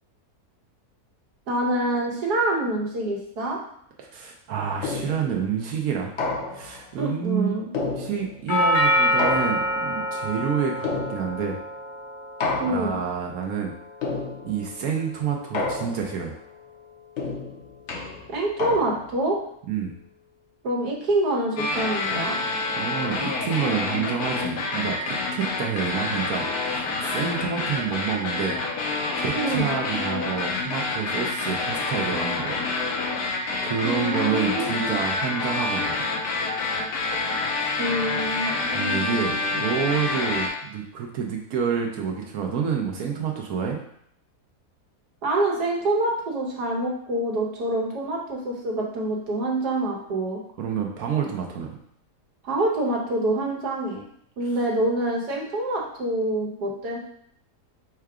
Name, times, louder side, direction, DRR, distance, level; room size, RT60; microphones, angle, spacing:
voice 1, 1.5-3.6 7.0-7.7 12.6-13.0 18.3-19.4 20.6-22.4 29.3-29.7 33.8-35.0 37.8-39.3 45.2-50.4 52.4-54.0 54.4-57.0, right 1 dB, 85° right, -2 dB, 1.5 m, -26 dB
voice 2, 4.1-6.1 6.5-7.7 8.0-11.6 12.6-13.7 14.4-16.3 19.7-20.0 22.8-28.6 29.2-32.6 33.6-36.0 38.7-43.8 50.6-51.7 54.4-54.5, right 7 dB, 70° right, 1 dB, 1.1 m, -28 dB
sound 1, 4.8-5.4 6.2-6.9 7.7-8.5 9.2-10.0 10.8-11.6 12.4-13.1 14.0-14.7 15.5-16.3 17.2-19.2, left 3 dB, 55° left, 0.9 m, -30 dB
Doorbell, 8.5-16.5, equal, 35° left, 0.5 m, -28 dB
sound 2, 21.6-40.5, left 3 dB, 80° left, 1.3 m, -27 dB
4.6 x 2.3 x 4.7 m, 0.68 s
omnidirectional pair, 1.6 m